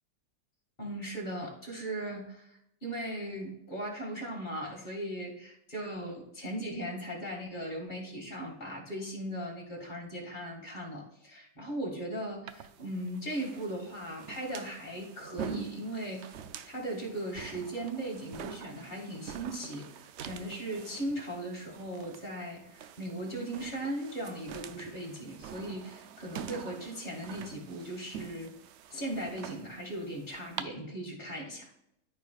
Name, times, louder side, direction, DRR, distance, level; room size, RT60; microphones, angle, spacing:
voice 1, 0.8-16.2 16.6-28.5 28.9-31.7, right 1 dB, 30° left, -1 dB, 2.2 m, -38 dB
sound 1, 12.5-30.6, right 8 dB, 65° right, 0.7 m, -46 dB
13.5 x 5.0 x 2.4 m, 0.78 s
omnidirectional pair, 1.6 m